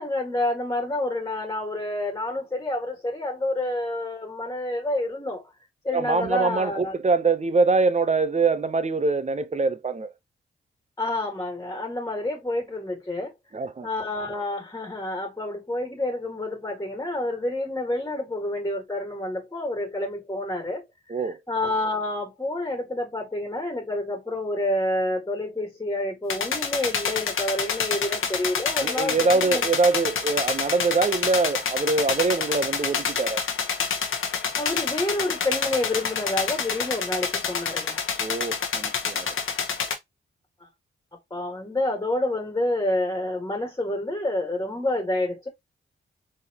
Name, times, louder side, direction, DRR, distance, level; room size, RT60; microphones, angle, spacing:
voice 1, 0.0-5.4 5.8-7.0 11.0-13.3 13.8-20.8 21.2-29.7 34.6-38.0 41.3-45.5, left 1 dB, 15° left, 1.8 m, -28 dB
voice 2, 5.9-10.1 13.5-13.9 21.1-21.4 28.8-33.4 38.2-39.3, right 3 dB, 35° right, 0.7 m, -24 dB
sound 1, 26.3-39.9, left 6 dB, 75° left, 1.1 m, -28 dB
4.3 x 3.5 x 2.9 m
cardioid pair, 60°, 21 cm